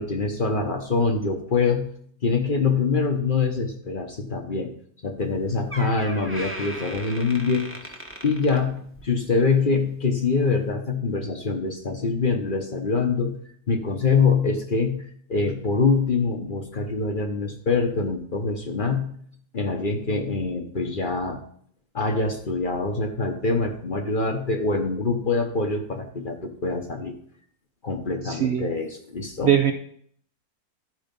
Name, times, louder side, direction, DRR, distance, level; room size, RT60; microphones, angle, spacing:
voice 1, 0.0-1.9 2.2-4.7 5.0-7.7 8.2-13.4 13.7-15.0 15.3-19.1 19.5-21.4 21.9-27.1 27.8-29.6, left 4 dB, 40° left, 4 dB, 1.0 m, -24 dB
Door, 5.2-5.4 5.7-9.2 9.5-9.8 10.6-10.7, right 1 dB, 10° right, 1.0 m, -38 dB
voice 2, 28.2-28.7 29.4-29.7, right 10 dB, 60° right, 6 dB, 0.7 m, -20 dB
12.0 x 5.0 x 5.2 m, 0.62 s
omnidirectional pair, 1.6 m